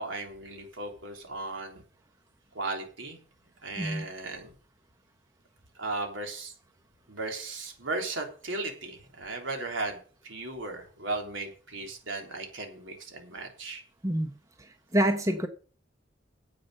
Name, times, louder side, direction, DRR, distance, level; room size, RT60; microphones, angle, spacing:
voice 1, 0.0-1.8 2.5-3.2 3.6-4.5 5.8-6.5 7.1-13.8, right 2 dB, 75° right, 3 dB, 3.4 m, -36 dB
voice 2, 14.6-15.5, equal, 15° right, 7 dB, 1.0 m, -27 dB
9.6 x 8.5 x 6.6 m, 0.40 s
head